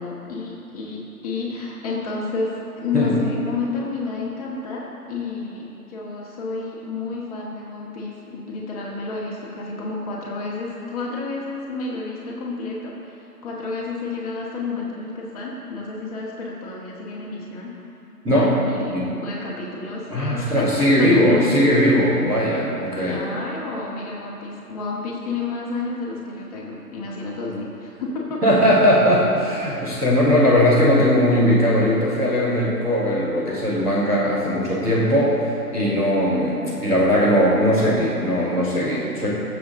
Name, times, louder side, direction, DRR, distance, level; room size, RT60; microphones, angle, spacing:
voice 1, 0.0-17.7 18.2-18.9 19.2-21.4 22.9-28.8, left 3 dB, 25° left, -4 dB, 1.8 m, -30 dB
voice 2, 20.1-23.2 28.4-35.3 35.7-39.3, equal, 5° right, -12 dB, 1.3 m, -19 dB
21.5 x 7.5 x 3.7 m, 2.9 s
figure-of-eight pair, 140°, 47 cm